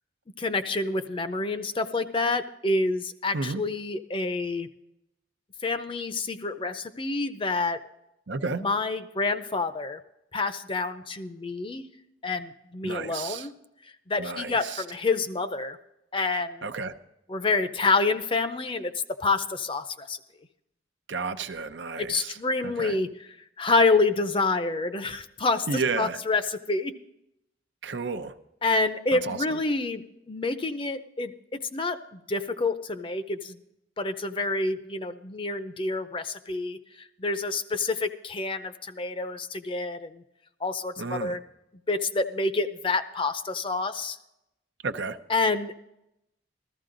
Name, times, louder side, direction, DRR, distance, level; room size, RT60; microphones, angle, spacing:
voice 1, 0.4-4.7 5.6-7.8 8.6-10.0 10.3-11.8 12.2-13.5 14.1-15.8 16.1-16.7 17.3-18.9 19.2-20.2 22.0-23.3 23.6-26.9 28.6-30.0 30.3-31.3 31.7-33.6 34.0-36.8 37.2-40.2 40.6-41.4 41.9-44.2 45.3-45.8, left 3 dB, 30° left, 10 dB, 0.6 m, -28 dB
voice 2, 8.3-8.6 12.8-13.5 14.2-14.8 16.6-16.9 21.1-22.4 22.6-22.9 25.7-26.2 27.8-28.3 29.1-29.6 41.0-41.4 44.8-45.2, right 4 dB, 80° right, 9 dB, 0.7 m, -32 dB
14.5 x 14.0 x 3.9 m, 0.84 s
head